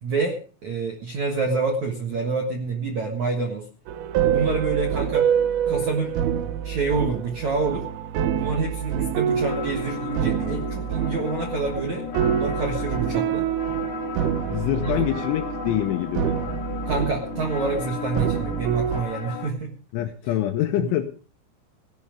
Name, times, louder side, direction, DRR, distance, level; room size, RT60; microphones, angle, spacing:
voice 1, 0.0-3.7 4.3-5.3 5.7-6.2 6.6-7.8 8.3-13.5 14.7-14.9 16.8-19.7 20.8-20.9, right 4 dB, 65° right, 3 dB, 1.8 m, -27 dB
sound 1, 3.9-19.0, right 9 dB, 85° right, 2.1 m, -26 dB
sound 2, 9.3-19.5, left 8 dB, 60° left, 3.5 m, -35 dB
voice 2, 14.5-16.4 19.9-21.1, left 13 dB, 75° left, 6 dB, 3.2 m, -25 dB
17.5 x 11.0 x 5.1 m, 0.39 s
omnidirectional pair, 5.9 m